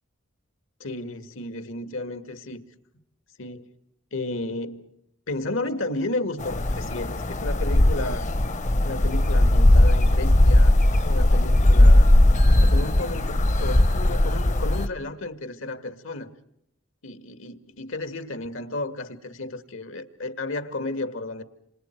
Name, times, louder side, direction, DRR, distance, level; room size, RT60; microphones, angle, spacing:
voice 1, 0.8-2.6 3.4-3.7 4.1-4.9 5.3-8.3 8.8-12.1 12.5-16.3 17.0-21.4, left 2 dB, 80° left, 2.0 m, -33 dB
sound 1, 6.4-14.9, left 1 dB, 35° left, 0.8 m, -18 dB
28.5 x 27.0 x 4.6 m
head